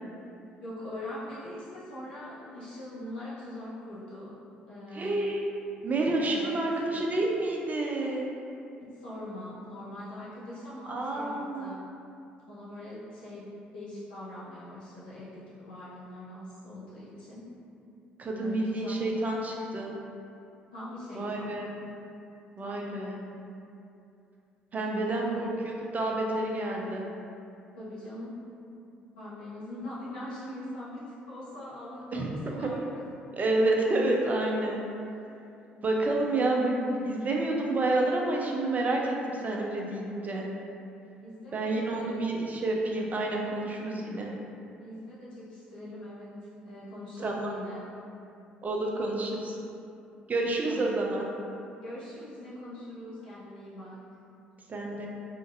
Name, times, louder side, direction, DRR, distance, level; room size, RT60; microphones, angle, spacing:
voice 1, 0.6-4.3 4.7-5.3 6.2-6.6 8.8-11.8 12.5-13.5 13.7-17.5 18.4-19.0 20.7-21.5 22.6-22.9 24.7-25.4 27.7-28.4 29.1-33.0 41.2-42.3 44.8-46.3 46.6-47.8 50.7-50.9 51.7-54.0, left 1 dB, 85° left, -10 dB, 0.8 m, -42 dB
voice 2, 4.9-5.4 5.8-8.3 10.9-11.7 18.2-19.9 21.1-21.7 22.6-23.2 24.7-25.5 25.9-27.1 32.1-32.3 32.6-32.7 33.4-34.8 35.8-40.5 41.5-44.3 47.2-47.5 48.6-49.6 50.3-51.2 54.7-55.1, right 2 dB, 35° right, -1 dB, 0.5 m, -29 dB
2.9 x 2.5 x 2.5 m, 2.6 s
hypercardioid pair, 50°, 5 cm